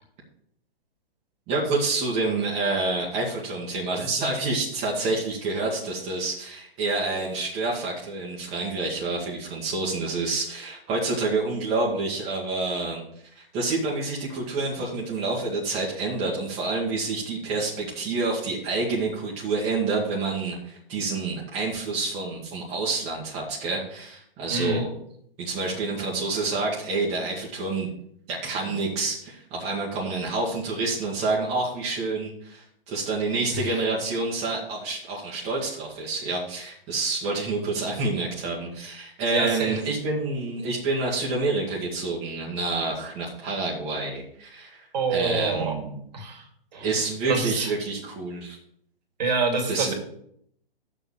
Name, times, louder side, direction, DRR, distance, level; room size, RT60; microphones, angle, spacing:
voice 1, 1.5-13.1 13.3-24.9 25.4-27.9 28.3-46.0 46.8-48.6 49.7-49.9, right 3 dB, 20° right, -4 dB, 1.7 m, -28 dB
voice 2, 24.5-24.8 28.6-28.8 33.5-33.7 39.3-39.8 44.9-45.7 46.1-46.5 46.7-46.9 47.3-47.7 49.2-49.9, right 3 dB, 45° right, 3 dB, 2.3 m, -26 dB
6.7 x 6.7 x 7.4 m, 0.68 s
figure-of-eight pair, 125°, 30 cm